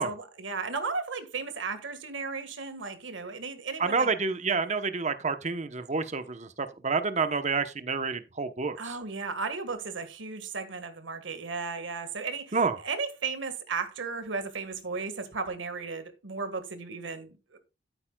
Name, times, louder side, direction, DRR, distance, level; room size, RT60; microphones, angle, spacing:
voice 1, 0.0-4.1 8.8-17.6, right 4 dB, 85° right, 1.6 m, -35 dB
voice 2, 3.8-8.9 12.5-12.8, right 4 dB, 40° right, 0.9 m, -28 dB
12.5 x 9.0 x 2.3 m
head